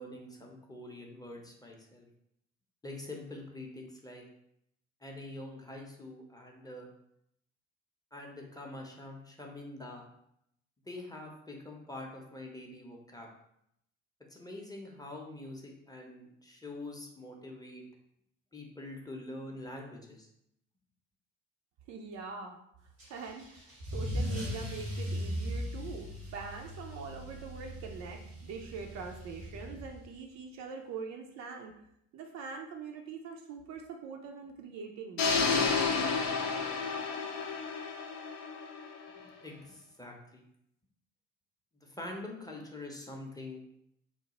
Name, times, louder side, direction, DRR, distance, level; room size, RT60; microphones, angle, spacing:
voice 1, 0.0-2.1 2.8-4.2 5.0-6.9 8.1-10.0 10.9-13.3 14.3-17.8 18.5-20.3 39.2-40.4 41.7-43.8, left 2 dB, 10° left, 0 dB, 0.6 m, -45 dB
voice 2, 21.9-22.6 23.1-31.7 32.1-35.2, right 5 dB, 50° right, 2 dB, 0.4 m, -43 dB
Car / Engine starting / Accelerating revving vroom, 23.0-30.2, equal, 85° right, 1.0 m, -38 dB
sound 1, 35.2-39.2, left 4 dB, 60° left, 0.5 m, -31 dB
2.9 x 2.1 x 2.9 m, 0.75 s
figure-of-eight pair, 45°, 36 cm